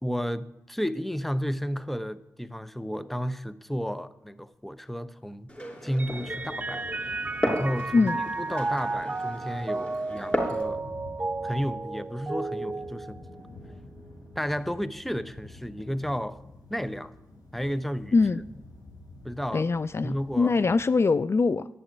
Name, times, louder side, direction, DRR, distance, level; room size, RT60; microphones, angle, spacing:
voice 1, 0.0-5.5 5.8-6.8 7.4-8.1 8.4-10.9 11.4-13.2 14.4-16.4 16.7-17.1 17.5-18.2 19.2-19.7 20.0-20.5, equal, 5° left, 13 dB, 0.9 m, -32 dB
Glass, 5.5-10.6, equal, 20° left, 5.9 m, -34 dB
sound 1, 6.0-20.8, left 2 dB, 80° left, 5.8 m, -49 dB
Mallet percussion, 6.0-13.7, right 3 dB, 25° right, 0.4 m, -33 dB
voice 2, 19.5-21.7, left 4 dB, 45° left, 15 dB, 0.5 m, -23 dB
12.0 x 7.1 x 9.6 m, 0.87 s
supercardioid pair, 45°, 6 cm